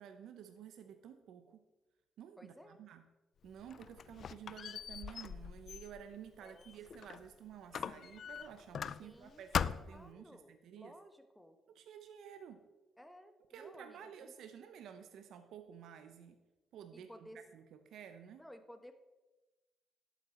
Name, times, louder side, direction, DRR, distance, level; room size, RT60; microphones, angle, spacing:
voice 1, 0.0-1.6 2.2-3.0 3.4-10.9 11.7-12.6 13.5-16.4 16.7-18.4, right 8 dB, 75° right, 8 dB, 0.7 m, -52 dB
voice 2, 2.4-2.8 6.4-6.7 9.0-11.6 13.0-14.3 16.9-17.4 18.4-18.9, equal, 5° left, 7 dB, 1.2 m, -56 dB
Squeak, 3.5-7.3 7.7-9.2 9.5-10.1, left 7 dB, 55° left, 0.4 m, -41 dB
12.0 x 8.2 x 4.3 m, 1.1 s
cardioid pair, 90°, 0 cm